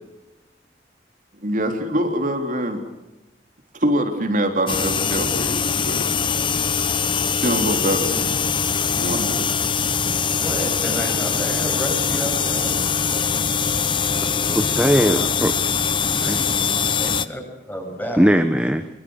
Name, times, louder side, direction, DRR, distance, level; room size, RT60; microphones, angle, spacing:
voice 1, 1.4-2.8 3.7-6.0 7.4-8.3 8.9-9.5, right 1 dB, 45° right, 3.5 m, -24 dB
sound 1, 4.7-17.3, left 6 dB, 25° left, 1.0 m, -22 dB
voice 2, 10.4-12.8 17.0-17.4 17.7-18.2, equal, 10° left, 7.8 m, -30 dB
voice 3, 14.3-15.6 16.1-16.7 18.2-18.9, equal, 5° right, 1.2 m, -20 dB
24.5 x 24.0 x 6.5 m
head